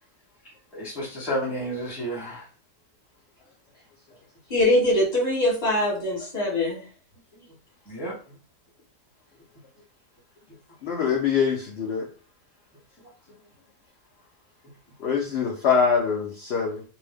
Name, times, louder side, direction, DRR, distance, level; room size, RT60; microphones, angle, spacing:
voice 1, 0.7-2.4 7.9-8.1, equal, ahead, -6 dB, 0.6 m, -31 dB
voice 2, 4.5-6.8, left 1 dB, 30° left, -6 dB, 1.2 m, -22 dB
voice 3, 10.8-12.0 15.0-16.8, left 6 dB, 65° left, -1 dB, 0.6 m, -24 dB
2.7 x 2.0 x 3.4 m, 0.37 s
omnidirectional pair, 1.7 m